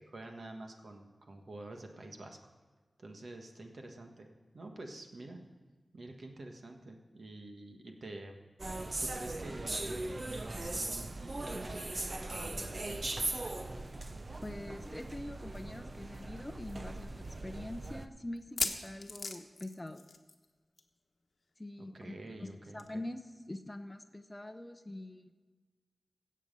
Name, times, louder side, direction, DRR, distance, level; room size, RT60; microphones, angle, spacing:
voice 1, 0.0-2.5 3.0-5.4 5.9-8.4 9.0-13.1 21.8-23.0, right 2 dB, 60° right, 3 dB, 1.5 m, -48 dB
sound 1, 8.6-18.1, right 2 dB, 40° right, 0.7 m, -39 dB
voice 2, 14.4-20.0 21.6-22.1 22.4-25.4, left 1 dB, 20° left, 9 dB, 0.7 m, -44 dB
sound 2, 15.7-15.8 16.1-16.2 16.8-16.9 18.4-20.5 20.8-21.0 21.2-21.3 22.8-22.9, left 3 dB, 55° left, 1.1 m, -38 dB
16.5 x 7.5 x 5.4 m, 1.4 s
wide cardioid pair, 80°, 0 cm